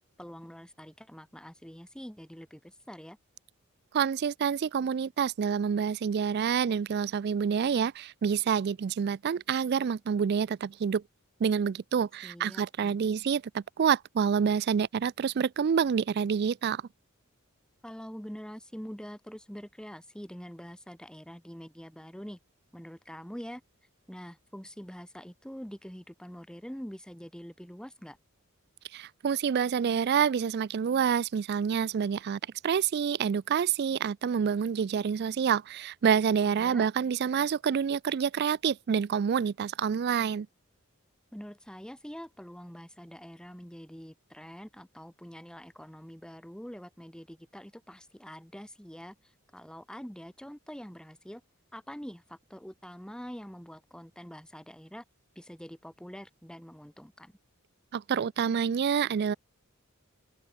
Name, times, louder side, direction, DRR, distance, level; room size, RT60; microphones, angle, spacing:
voice 1, 0.2-3.2 12.2-13.2 17.8-22.4 22.7-23.6 24.1-28.2 36.4-36.9 41.3-51.4 51.7-55.0 55.4-57.4, equal, 5° left, 1.8 m, -45 dB
voice 2, 3.9-11.0 11.4-16.8 28.9-40.5 57.9-59.3, right 7 dB, 50° right, 0.3 m, -27 dB
open air
head